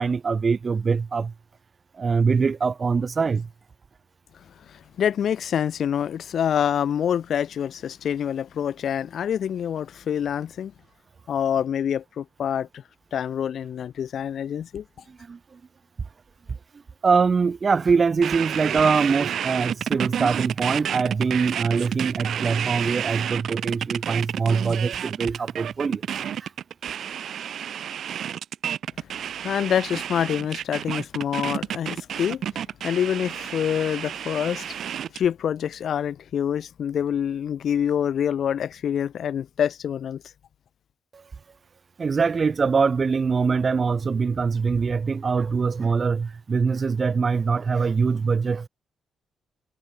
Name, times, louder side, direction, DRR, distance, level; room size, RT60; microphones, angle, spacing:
voice 1, 0.0-1.3 1.9-3.5 15.1-15.6 17.0-26.0 26.4-26.5 41.1-41.2 42.0-48.7, right 5 dB, 40° right, 2.4 m, -23 dB
voice 2, 4.7-10.7 11.3-12.8 13.1-14.8 29.4-34.8 35.1-40.2, left 9 dB, 70° left, 1.5 m, -26 dB
sound 1, 18.2-35.3, right 9 dB, 70° right, 3.5 m, -30 dB
cardioid pair, 80°, 0 cm